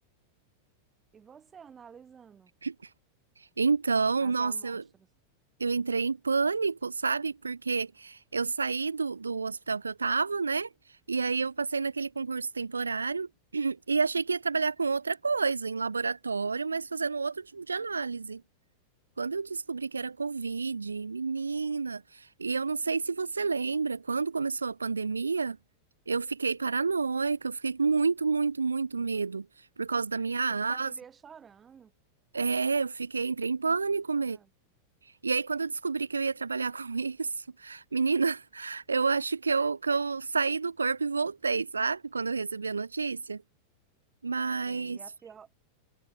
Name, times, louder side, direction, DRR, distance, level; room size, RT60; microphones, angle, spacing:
voice 1, 1.1-2.5 4.2-5.1 30.4-31.9 34.2-34.5 44.7-45.5, right 7 dB, 20° right, 2.4 m, -52 dB
voice 2, 3.4-4.8 5.6-10.7 11.1-18.4 19.2-25.6 26.1-30.9 32.3-34.4 35.0-43.4 44.2-45.0, right 4 dB, 75° right, 0.4 m, -29 dB
figure-of-eight pair, 90°, 0 cm